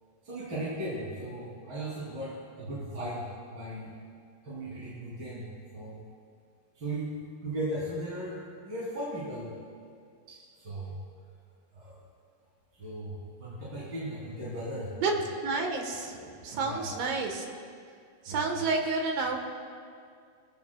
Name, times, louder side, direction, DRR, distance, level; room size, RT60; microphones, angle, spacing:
voice 1, 0.2-3.9 4.4-6.0 6.7-7.2 7.4-9.5 10.3-11.0 11.7-12.0 12.8-15.2 16.2-16.9 18.3-18.7, right 1 dB, 30° right, -9 dB, 2.9 m, -37 dB
voice 2, 15.4-16.2 16.4-17.4 18.3-19.4, right 4 dB, 70° right, 2 dB, 2.6 m, -30 dB
21.5 x 15.0 x 2.2 m, 2.2 s
omnidirectional pair, 4.6 m